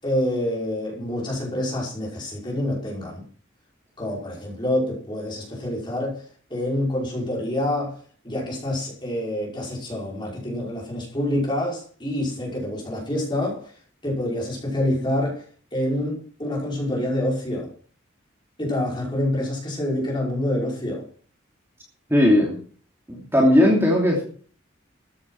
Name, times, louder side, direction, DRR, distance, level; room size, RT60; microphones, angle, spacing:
voice 1, 0.0-3.2 4.0-6.2 6.5-8.0 8.2-13.7 14.0-15.4 15.7-17.7 18.6-21.0, left 1 dB, 25° left, -3 dB, 5.6 m, -27 dB
voice 2, 22.1-22.6 23.1-24.2, left 1 dB, 10° right, -2 dB, 2.9 m, -17 dB
14.0 x 9.4 x 5.9 m, 0.44 s
head